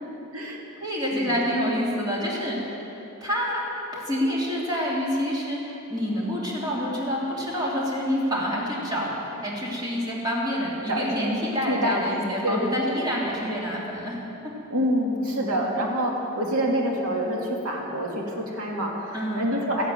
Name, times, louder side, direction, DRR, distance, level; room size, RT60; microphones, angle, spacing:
voice 1, 0.8-3.6 3.9-14.2 15.3-15.6 19.1-19.5, equal, 20° right, -4 dB, 3.0 m, -27 dB
voice 2, 10.9-11.4 11.7-13.0 14.7-19.9, equal, 90° right, -1 dB, 2.4 m, -27 dB
15.0 x 10.5 x 9.1 m, 2.9 s
head